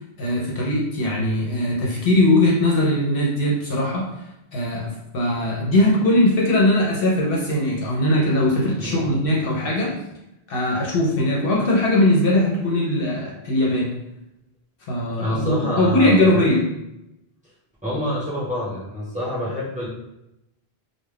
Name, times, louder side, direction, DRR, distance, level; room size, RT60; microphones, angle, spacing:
voice 1, 0.2-4.1 4.5-9.9 10.5-13.9 14.9-16.6, left 1 dB, 65° left, -3 dB, 0.8 m, -20 dB
voice 2, 8.8-9.1 15.2-16.5 17.8-19.9, left 1 dB, 10° right, -8 dB, 0.8 m, -27 dB
2.3 x 2.1 x 3.3 m, 0.87 s
omnidirectional pair, 1.1 m